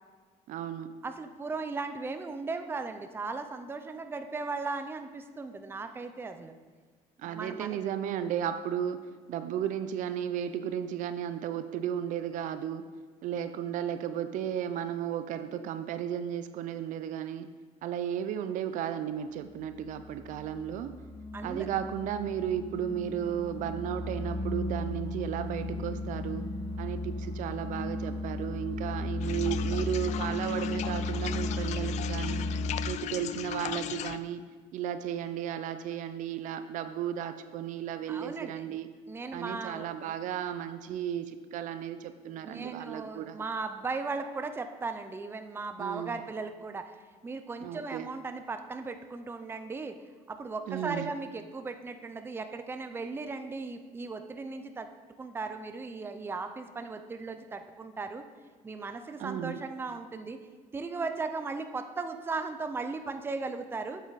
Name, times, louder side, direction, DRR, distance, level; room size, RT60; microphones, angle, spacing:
voice 1, 0.5-0.9 7.2-12.9 13.2-17.5 17.8-21.0 21.4-26.5 26.8-32.4 32.8-34.4 34.7-38.9 39.3-43.4 45.8-46.2 47.6-48.1 50.7-51.1 59.2-59.6, right 9 dB, 65° right, 11 dB, 0.5 m, -34 dB
voice 2, 1.0-6.5 7.2-7.8 21.3-21.7 38.1-38.8 39.1-40.1 42.4-46.9 47.2-49.9 50.3-54.9 55.2-58.2 58.6-60.4 60.7-64.0, right 4 dB, 15° right, 8 dB, 0.5 m, -37 dB
sound 1, 19.6-32.8, left 2 dB, 30° left, 1.3 m, -35 dB
sound 2, 29.2-34.2, left 12 dB, 55° left, 0.4 m, -37 dB
8.1 x 7.8 x 4.0 m, 1.5 s
cardioid pair, 120°, 14 cm